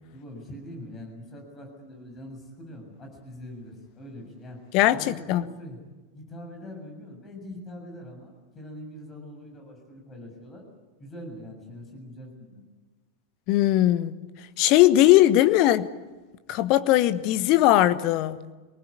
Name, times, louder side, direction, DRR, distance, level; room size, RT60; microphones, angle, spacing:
voice 1, 0.1-4.6 4.9-5.8 6.1-10.6 11.0-12.6, left 1 dB, 20° left, 7.2 m, -43 dB
voice 2, 4.7-5.4 13.5-14.2 14.6-15.9 16.5-18.4, left 14 dB, 40° left, 1.1 m, -19 dB
26.0 x 19.5 x 8.6 m
figure-of-eight pair, 90°, 0 cm